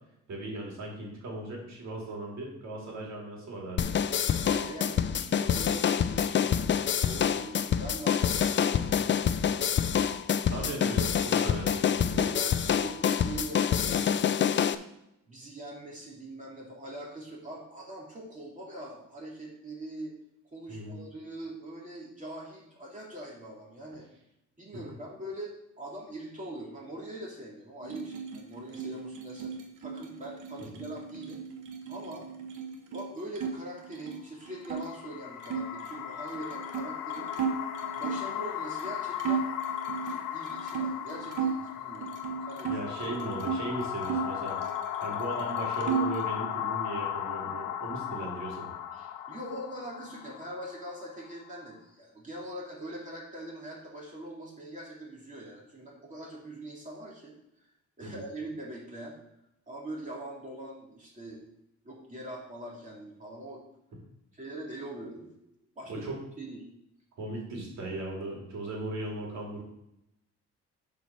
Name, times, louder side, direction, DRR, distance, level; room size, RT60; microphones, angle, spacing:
voice 1, 0.3-4.0 10.5-12.2 20.7-20.9 42.7-44.6 45.0-48.7 58.0-58.2 65.9-66.2 67.2-69.6, right 2 dB, 65° right, -2 dB, 3.1 m, -37 dB
sound 1, 3.8-14.7, left 8 dB, 40° left, 0.5 m, -26 dB
voice 2, 4.4-6.7 7.0-9.5 12.2-14.8 15.3-20.1 20.4-24.0 24.6-29.5 29.8-31.4 31.9-32.3 32.9-37.3 37.9-39.4 40.3-42.1 42.5-42.8 43.1-43.2 47.4-47.5 48.9-57.7 58.0-59.2 59.7-61.4 61.8-63.6 64.3-65.3 65.7-66.0 66.4-66.6, right 1 dB, 25° right, -3 dB, 3.2 m, -42 dB
sound 2, 27.8-33.5 33.8-34.9 35.4-38.3 38.8-38.9 39.2-41.6 42.0-43.6 44.0-45.1 45.4-46.3, right 6 dB, 85° right, 1.1 m, -35 dB
sound 3, 34.6-51.7, left 10 dB, 90° left, 0.6 m, -36 dB
6.9 x 4.8 x 5.9 m, 0.83 s
cardioid pair, 90°, 30 cm